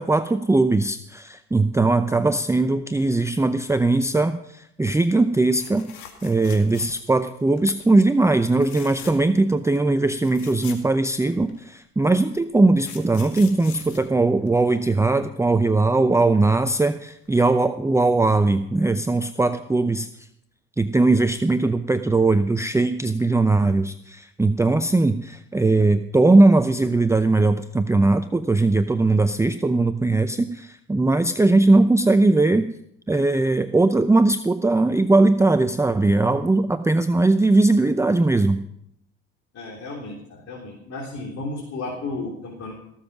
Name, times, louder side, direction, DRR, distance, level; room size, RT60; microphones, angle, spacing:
voice 1, 0.0-20.3 20.8-32.7 33.1-38.6, right 2 dB, 10° right, 10 dB, 0.6 m, -20 dB
sound 1, 5.6-7.2 7.6-7.9 8.5-9.4 9.8-9.9 10.1-11.6 12.3-14.9 16.8-17.0 17.3-17.4, left 9 dB, 80° left, 2.3 m, -43 dB
voice 2, 39.5-42.7, left 2 dB, 50° left, -2 dB, 3.7 m, -33 dB
18.0 x 7.3 x 6.1 m, 0.73 s
supercardioid pair, 70°, 31 cm